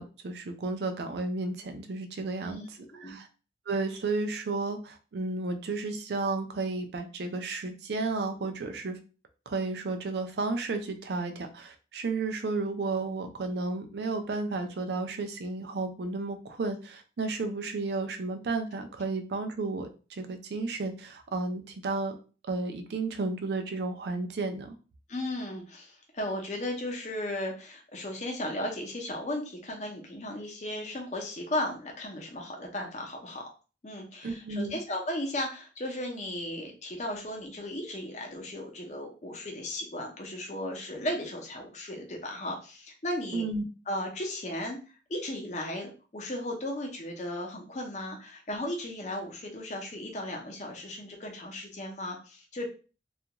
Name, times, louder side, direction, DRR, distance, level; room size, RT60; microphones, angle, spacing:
voice 1, 0.0-3.3 3.7-9.0 9.5-22.1 22.5-24.8 34.2-34.8 43.3-43.6, right 3 dB, 70° right, 6 dB, 0.4 m, -33 dB
voice 2, 25.1-33.4 33.8-43.4 43.9-44.8 45.1-52.7, left 1 dB, 40° left, 1 dB, 0.6 m, -35 dB
2.4 x 2.2 x 2.9 m, 0.35 s
head